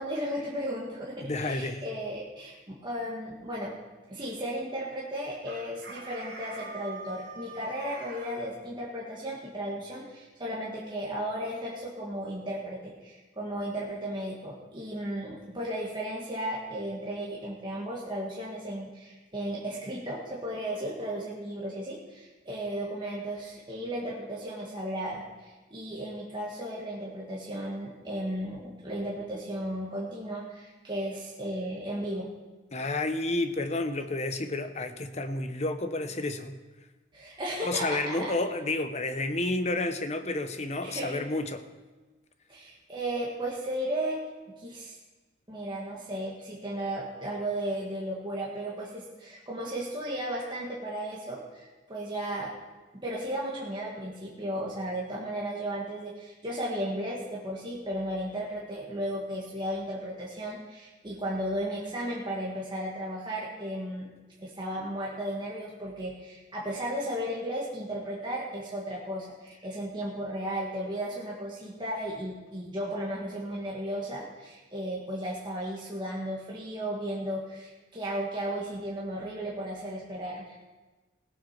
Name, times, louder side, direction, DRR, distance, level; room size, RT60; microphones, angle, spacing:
voice 1, 0.0-3.8 4.1-32.3 37.1-38.3 40.8-41.2 42.5-44.2 44.6-45.0 45.5-52.5 53.0-64.1 64.4-80.6, right 1 dB, 25° right, -5 dB, 1.9 m, -35 dB
voice 2, 1.2-1.8 32.7-36.6 37.6-41.6, left 2 dB, 35° left, 8 dB, 0.9 m, -30 dB
Chicken rooster, 5.5-8.4, right 3 dB, 70° right, 5.2 m, -43 dB
17.0 x 7.7 x 5.9 m, 1.2 s
head